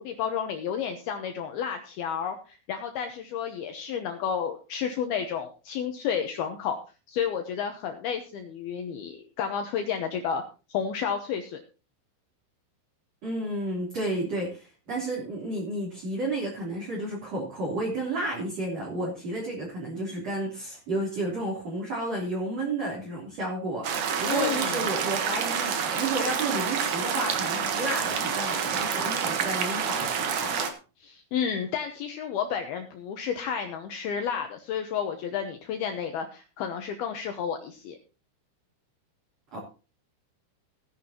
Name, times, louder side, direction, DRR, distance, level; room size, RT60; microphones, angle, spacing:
voice 1, 0.0-6.8 7.1-10.4 10.7-11.6 24.3-24.9 31.0-38.0, left 7 dB, 75° left, 5 dB, 2.3 m, -31 dB
voice 2, 13.2-30.6 39.5-39.6, right 2 dB, 35° right, -5 dB, 4.1 m, -32 dB
sound 1, 23.8-30.7, right 7 dB, 70° right, 1.9 m, -28 dB
17.5 x 10.0 x 2.9 m, 0.33 s
omnidirectional pair, 5.6 m